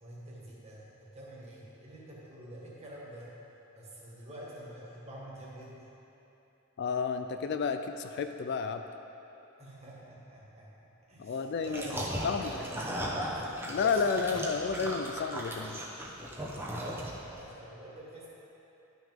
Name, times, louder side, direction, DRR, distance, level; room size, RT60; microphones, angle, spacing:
voice 1, 0.0-3.4 3.7-5.9 9.6-13.2 13.6-14.6 16.7-18.3, right 1 dB, 30° right, -6 dB, 1.7 m, -47 dB
voice 2, 6.8-8.8 11.2-11.9 12.2-12.5 13.6-15.8, left 5 dB, 50° left, 7 dB, 0.3 m, -31 dB
sound 1, 11.6-17.4, equal, 10° right, 0.8 m, -37 dB
11.5 x 6.0 x 3.6 m, 3.0 s
head